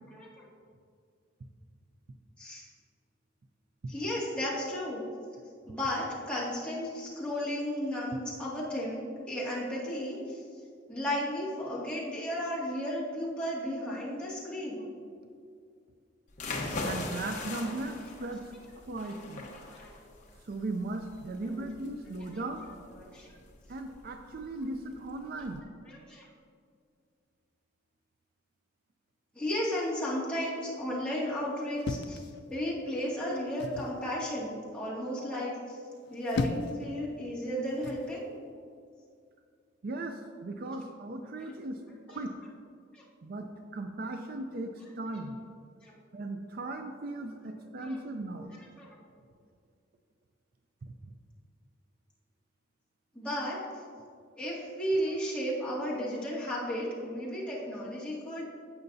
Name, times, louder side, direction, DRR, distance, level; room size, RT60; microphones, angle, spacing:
voice 1, 0.1-0.4 2.4-2.6 3.9-5.0 5.7-10.4 10.9-14.8 16.7-16.9 19.7-19.9 21.5-21.6 23.0-23.3 26.1-26.3 29.3-32.2 32.5-35.8 36.1-38.2 42.1-42.2 42.9-43.0 45.8-45.9 47.8-48.0 48.8-48.9 53.1-53.6 54.4-58.4, equal, 5° left, -8 dB, 2.1 m, -34 dB
sound 1, 16.3-25.6, left 2 dB, 40° left, 1.0 m, -41 dB
voice 2, 16.8-18.4 18.8-19.5 20.5-22.7 23.7-25.6 39.8-41.8 42.1-42.4 43.2-45.4 46.1-48.5 50.8-51.1, right 2 dB, 50° right, 6 dB, 0.5 m, -37 dB
sound 2, 31.8-32.9 33.6-34.0 36.0-36.9 37.8-38.1, left 3 dB, 60° left, 0.4 m, -35 dB
15.5 x 5.8 x 2.7 m, 2.2 s
head